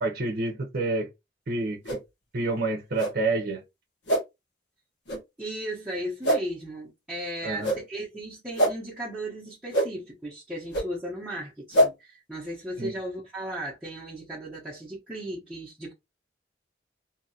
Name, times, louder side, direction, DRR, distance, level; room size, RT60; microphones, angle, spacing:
voice 1, 0.0-1.1 1.5-1.8 2.3-3.6 7.4-7.7 12.8-12.9, right 2 dB, 55° right, 0.7 m, -28 dB
sound 1, 1.8-2.0 3.0-3.1 4.1-4.2 5.1-5.2 6.2-6.4 7.6-7.8 8.6-8.7 9.7-9.9 10.7-10.8 11.7-11.9, equal, 65° left, 1.0 m, -23 dB
voice 2, 5.4-15.9, right 1 dB, 5° right, 0.8 m, -36 dB
2.8 x 2.6 x 2.6 m
head